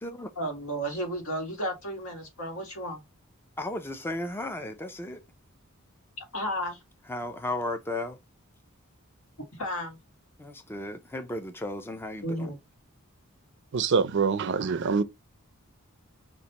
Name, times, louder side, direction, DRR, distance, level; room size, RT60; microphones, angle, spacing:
voice 1, 0.4-3.0 6.2-6.8 9.5-10.0 12.2-12.6, equal, 80° left, 1.7 m, -33 dB
voice 2, 3.6-5.2 7.1-8.2 10.4-12.5, left 1 dB, 10° left, 0.4 m, -35 dB
voice 3, 13.7-15.0, right 5 dB, 55° right, 0.4 m, -25 dB
5.3 x 2.5 x 2.9 m
head